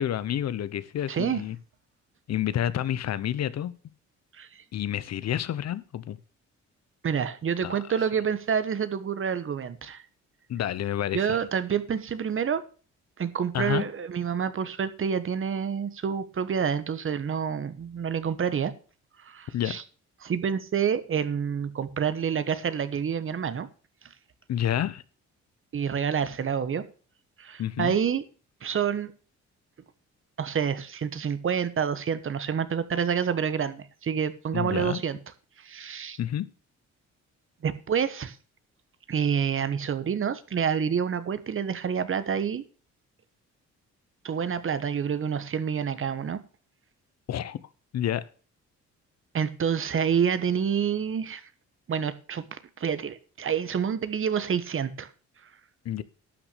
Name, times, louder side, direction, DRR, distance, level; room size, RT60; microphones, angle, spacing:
voice 1, 0.0-1.6 2.3-3.7 4.7-6.2 7.6-7.8 10.5-11.4 13.5-13.8 19.5-19.8 24.5-25.0 27.6-27.9 34.5-35.0 36.2-36.5 47.3-47.6 47.9-48.2 55.8-56.0, left 11 dB, 60° left, 0.8 m, -29 dB
voice 2, 1.1-1.4 4.3-4.6 7.0-10.0 11.1-12.6 13.2-18.7 19.2-19.8 20.2-23.7 25.7-26.8 27.4-28.2 28.6-29.1 30.4-35.2 35.6-36.2 37.6-38.4 39.1-42.6 44.2-46.4 49.3-51.4 51.9-55.1, right 7 dB, 45° right, 1.1 m, -28 dB
12.0 x 6.0 x 6.7 m
cardioid pair, 90°, 30 cm